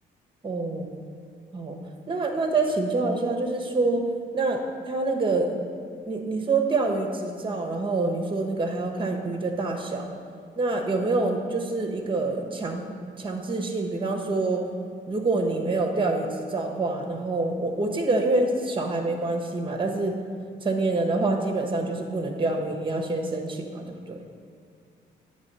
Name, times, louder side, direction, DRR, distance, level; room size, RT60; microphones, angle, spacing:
voice 1, 0.4-0.9 1.5-1.8 2.1-4.1 4.3-5.5 6.1-10.0 10.6-12.9 13.2-14.6 15.1-20.2 20.6-24.2, right 3 dB, 25° right, 3 dB, 1.1 m, -26 dB
9.0 x 3.5 x 6.8 m, 2.2 s
cardioid pair, 90°, 20 cm